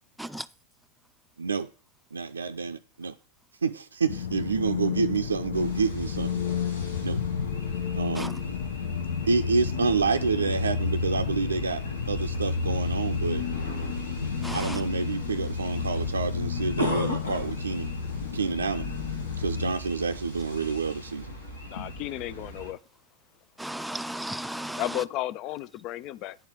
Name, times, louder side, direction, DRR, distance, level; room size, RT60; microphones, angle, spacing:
voice 1, 1.4-1.7 2.1-3.1 3.6-6.4 7.0-7.2 7.9-8.3 9.3-13.4 14.5-17.9 18.3-18.9 19.4-21.3, right 4 dB, 85° right, 0.4 m, -28 dB
sound 1, 4.1-19.7, left 6 dB, 70° left, 0.9 m, -31 dB
sound 2, 5.5-22.7, left 1 dB, 85° left, 3.9 m, -39 dB
voice 2, 14.4-14.8 23.6-25.0, right 1 dB, ahead, 0.5 m, -35 dB
voice 3, 21.7-22.8 24.8-26.4, left 14 dB, 45° left, 0.4 m, -33 dB
10.0 x 4.4 x 7.8 m
figure-of-eight pair, 90°, 0 cm